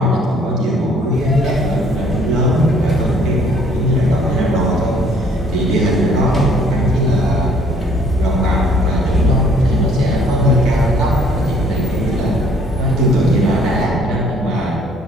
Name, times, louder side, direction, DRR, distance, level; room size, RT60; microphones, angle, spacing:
voice 1, 0.0-7.5 8.1-12.4 12.8-14.7, equal, 85° right, -5 dB, 3.2 m, -18 dB
sound 1, 1.1-13.9, left 1 dB, ahead, 3.3 m, -22 dB
sound 2, 1.7-13.7, right 1 dB, 65° right, 2.9 m, -30 dB
16.0 x 5.5 x 9.0 m, 2.4 s
cardioid pair, 90°, 0 cm